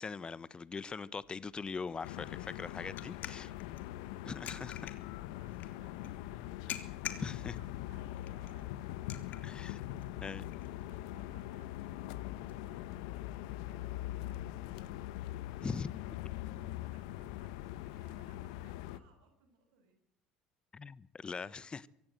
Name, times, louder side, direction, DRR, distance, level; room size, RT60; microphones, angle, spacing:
voice 1, 0.0-3.5 4.3-4.8 7.2-7.5 9.4-9.8 10.2-10.4 15.6-15.9 20.7-21.9, left 5 dB, 25° left, 1.0 m, -41 dB
sound 1, 1.2-12.5, left 10 dB, 50° left, 2.9 m, -50 dB
sound 2, 2.0-19.0, left 14 dB, 70° left, 1.1 m, -42 dB
voice 2, 3.5-10.2 10.6-15.8 16.6-20.0, right 4 dB, 70° right, 7.6 m, -66 dB
24.0 x 16.0 x 7.9 m
hypercardioid pair, 70°, 4 cm